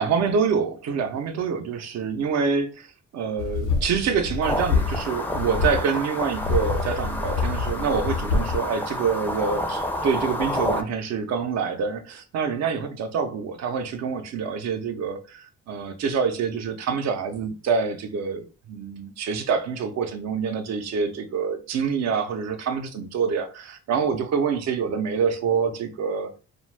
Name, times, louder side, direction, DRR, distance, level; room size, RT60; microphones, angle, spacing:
voice 1, 0.0-2.9 3.1-26.3, right 6 dB, 60° right, 0.6 m, -26 dB
sound 1, 3.4-5.1 5.3-5.8 6.3-8.6, left 4 dB, 90° left, 0.9 m, -26 dB
sound 2, 4.4-10.8, left 1 dB, 5° left, 0.4 m, -30 dB
2.4 x 2.2 x 3.2 m
cardioid pair, 90°, 30 cm